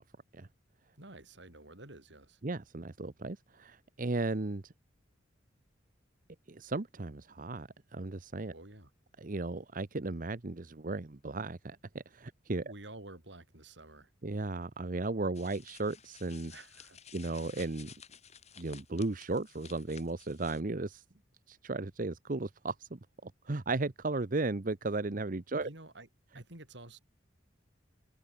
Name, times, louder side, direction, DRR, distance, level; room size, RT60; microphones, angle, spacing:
voice 1, 1.0-2.4 8.5-8.9 12.6-14.1 16.5-17.0 25.6-26.1 26.3-27.0, right 2 dB, 65° right, 4.7 m, -50 dB
voice 2, 2.4-4.7 6.5-8.5 9.2-12.7 14.2-16.5 17.1-17.9 18.6-21.0 21.5-25.7, right 2 dB, 45° right, 0.9 m, -35 dB
sound 1, 15.3-20.6, left 8 dB, 35° left, 3.1 m, -54 dB
head